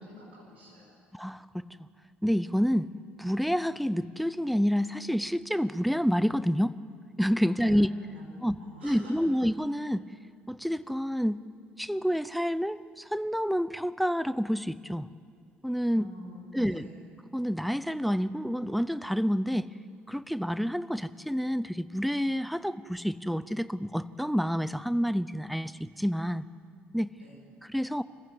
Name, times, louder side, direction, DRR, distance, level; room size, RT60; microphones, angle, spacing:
voice 1, 0.0-1.0 7.4-9.2 15.9-17.0 27.2-27.4, equal, 85° right, -3 dB, 4.8 m, -47 dB
voice 2, 1.1-1.7 2.2-2.9 3.2-6.7 7.2-7.9 8.4-10.1 10.5-11.4 11.8-15.1 15.6-16.1 16.5-16.9 17.3-19.7 20.1-26.5 26.9-27.1 27.7-28.0, equal, ahead, 17 dB, 0.7 m, -28 dB
26.5 x 15.5 x 8.1 m, 2.2 s
figure-of-eight pair, 55°, 6 cm